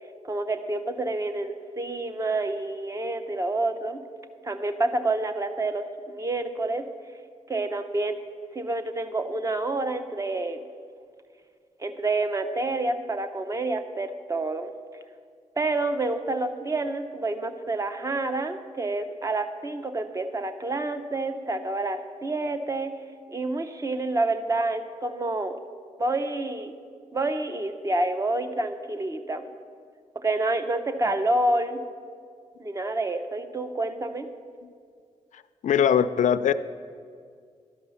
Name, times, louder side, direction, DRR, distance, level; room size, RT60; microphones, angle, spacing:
voice 1, 0.2-4.0 4.4-6.8 7.5-8.2 8.5-10.6 11.8-14.7 15.6-22.9 23.3-25.6 26.0-26.7 27.1-29.5 30.2-31.8 32.6-34.3, right 2 dB, 25° right, 8 dB, 0.7 m, -28 dB
voice 2, 35.6-36.5, left 8 dB, 75° left, 14 dB, 0.4 m, -21 dB
11.5 x 5.4 x 7.0 m, 2.1 s
wide cardioid pair, 105°, 13 cm